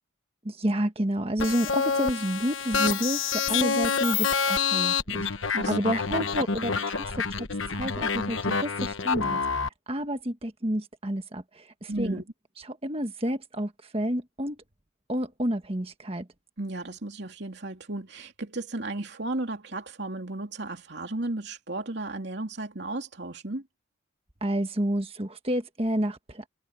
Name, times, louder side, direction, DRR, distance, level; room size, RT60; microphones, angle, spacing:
voice 1, 0.4-9.6 9.9-12.2 12.7-14.6 15.1-16.3 24.4-26.4, right 1 dB, 30° right, 1.6 m, -30 dB
sound 1, 1.4-9.7, left 5 dB, 70° left, 1.2 m, -27 dB
voice 2, 11.9-12.2 16.6-23.6, right 2 dB, 55° right, 3.1 m, -34 dB
head